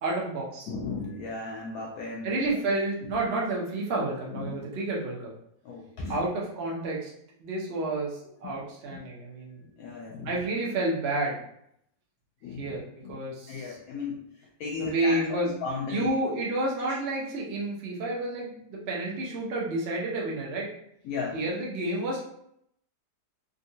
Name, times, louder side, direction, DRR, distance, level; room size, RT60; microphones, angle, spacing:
voice 1, 0.0-0.7 2.2-5.2 6.1-7.1 7.4-9.6 10.2-11.4 12.6-12.8 13.1-13.8 14.7-15.5 15.9-20.7 21.3-22.2, right 2 dB, 55° right, -3 dB, 0.7 m, -30 dB
voice 2, 0.7-2.6 3.1-3.3 4.3-4.6 5.6-6.3 8.4-8.6 8.9-9.0 9.8-10.4 12.4-14.2 14.6-16.1 16.9-17.0 21.0-21.4, left 4 dB, 70° left, -2 dB, 0.9 m, -36 dB
3.6 x 2.2 x 2.6 m, 0.72 s
omnidirectional pair, 1.8 m